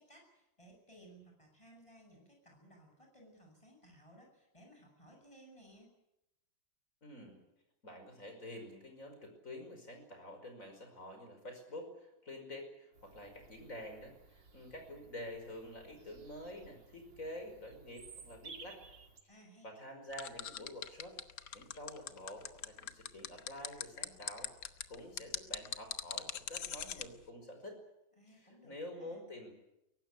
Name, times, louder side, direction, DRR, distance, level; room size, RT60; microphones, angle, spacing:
voice 1, 0.0-5.9 19.3-19.7 28.2-28.7 29.0-29.2, right 1 dB, 15° left, 1 dB, 8.0 m, -60 dB
voice 2, 7.0-7.4 7.8-18.8 19.6-21.2 21.5-24.5 24.9-27.8 28.3-29.5, left 1 dB, 45° left, 5 dB, 5.7 m, -48 dB
Bird vocalization bird call bird song, 12.9-19.2, right 5 dB, 80° right, 3.0 m, -57 dB
sound 1, 20.1-27.1, left 9 dB, 65° left, 1.6 m, -40 dB
22.5 x 18.0 x 9.9 m, 0.87 s
omnidirectional pair, 2.0 m